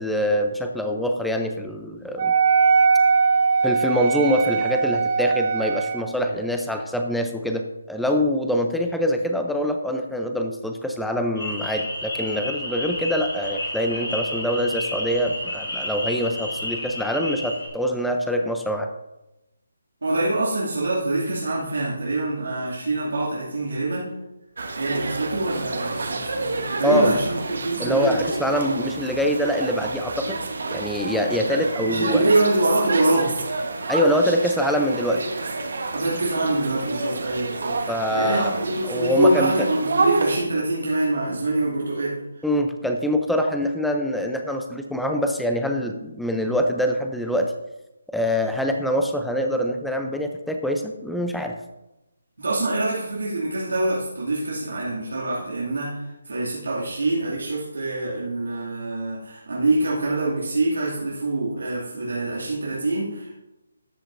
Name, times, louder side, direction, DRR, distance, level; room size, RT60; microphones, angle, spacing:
voice 1, 0.0-2.3 3.6-18.9 26.8-27.1 27.8-30.4 30.7-32.2 33.9-35.2 37.9-38.5 38.8-39.5 42.4-47.5 48.1-51.6, equal, ahead, 4 dB, 0.6 m, -24 dB
Wind instrument woodwind instrument, 2.2-6.1, right 5 dB, 40° right, 0.9 m, -20 dB
sound 1, 11.4-17.7, left 1 dB, 80° left, 3.1 m, -31 dB
voice 2, 20.0-24.1 24.8-28.3 31.4-33.4 35.9-42.2 52.4-63.4, right 2 dB, 90° right, -6 dB, 2.5 m, -25 dB
sound 2, 24.6-40.4, right 3 dB, 70° right, 1.3 m, -29 dB
13.0 x 7.3 x 2.7 m, 0.96 s
hypercardioid pair, 160°, 0 cm